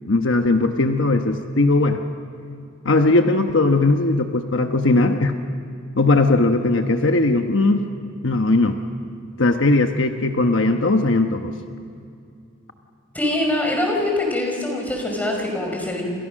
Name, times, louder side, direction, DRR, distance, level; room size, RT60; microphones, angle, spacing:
voice 1, 0.0-2.0 2.8-5.3 5.9-7.8 8.2-8.8 9.4-11.5, left 2 dB, 65° left, 5 dB, 1.2 m, -18 dB
voice 2, 13.1-16.0, left 1 dB, 10° left, 1 dB, 5.3 m, -23 dB
28.5 x 28.0 x 6.4 m, 2.5 s
head